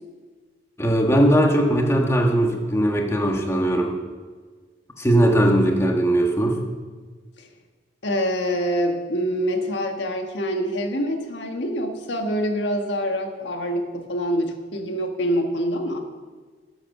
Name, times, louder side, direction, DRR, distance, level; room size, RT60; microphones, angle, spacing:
voice 1, 0.8-4.0 5.0-6.6, right 1 dB, 15° left, 1 dB, 1.4 m, -19 dB
voice 2, 8.0-16.0, equal, 80° left, 4 dB, 1.5 m, -25 dB
12.0 x 7.9 x 6.6 m, 1.4 s
head